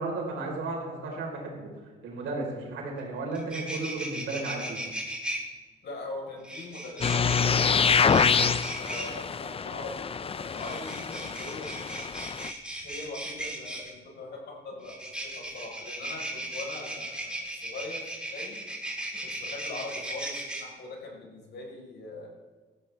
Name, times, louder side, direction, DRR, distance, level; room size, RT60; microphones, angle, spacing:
voice 1, 0.0-1.7 2.0-4.8, right 3 dB, 80° right, -1 dB, 4.3 m, -34 dB
sound 1, 3.0-3.1 3.3-5.4 6.4-9.1 10.5-13.9 14.8-20.6, right 1 dB, 5° right, 3.6 m, -37 dB
voice 2, 5.8-7.7 8.8-10.0 10.3-12.1 12.8-18.6 19.2-22.3, left 2 dB, 60° left, -1 dB, 4.6 m, -41 dB
sound 2, 7.0-12.5, left 6 dB, 30° left, 0.5 m, -26 dB
17.0 x 13.5 x 3.4 m, 1.3 s
cardioid pair, 90°, 20 cm